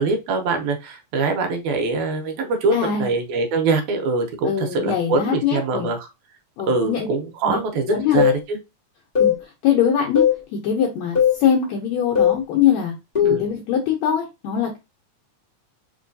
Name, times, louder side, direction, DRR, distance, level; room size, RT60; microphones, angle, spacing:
voice 1, 0.0-6.1 6.7-8.6 13.3-13.4, right 3 dB, 80° right, 4 dB, 2.1 m, -23 dB
voice 2, 2.7-3.1 4.4-5.9 6.6-7.1 7.4-7.6 7.9-8.2 9.2-9.3 9.6-10.3 10.5-14.8, left 8 dB, 75° left, 0 dB, 1.8 m, -22 dB
sound 1, 8.2-8.4 9.2-9.4 10.2-10.4 11.2-11.4 12.2-12.4 13.2-13.5, left 9 dB, 55° left, 0.4 m, -17 dB
4.4 x 3.1 x 2.5 m, 0.24 s
omnidirectional pair, 3.5 m